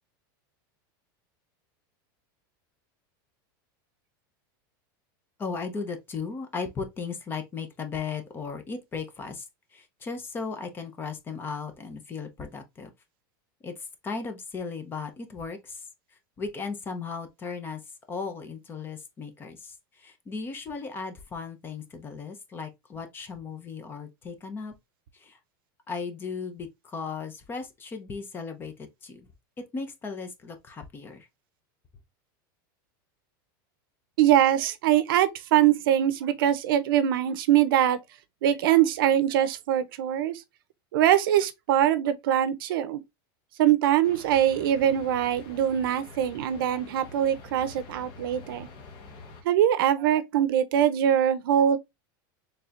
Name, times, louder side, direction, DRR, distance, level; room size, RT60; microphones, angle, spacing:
voice 1, 5.4-12.9 13.6-17.8 18.1-24.7 25.1-25.4 25.9-29.3 29.6-31.3, left 5 dB, 20° left, 0.7 m, -36 dB
voice 2, 34.2-38.0 38.4-40.4 40.9-43.0 43.6-48.7 49.4-51.8, right 11 dB, 80° right, 0.6 m, -23 dB
sound 1, 44.0-49.4, left 3 dB, 40° left, 1.1 m, -46 dB
4.3 x 3.3 x 2.4 m
supercardioid pair, 155°, 12 cm